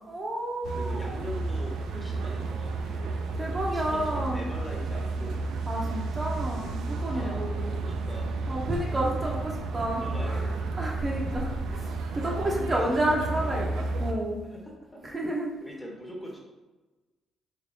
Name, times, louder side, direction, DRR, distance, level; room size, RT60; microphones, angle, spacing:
voice 1, 0.1-1.2 2.8-3.0 3.4-4.4 5.7-8.0 8.5-10.5 10.8-14.4 15.0-15.5, right 1 dB, 25° right, -2 dB, 0.5 m, -31 dB
sound 1, 0.6-14.1, right 3 dB, 80° right, 0.3 m, -32 dB
voice 2, 0.7-5.4 7.1-8.8 9.9-11.0 12.2-13.3 14.5-15.0 15.6-16.4, equal, 10° left, -1 dB, 0.8 m, -42 dB
3.4 x 2.9 x 2.6 m, 1.2 s
cardioid pair, 90°, 0 cm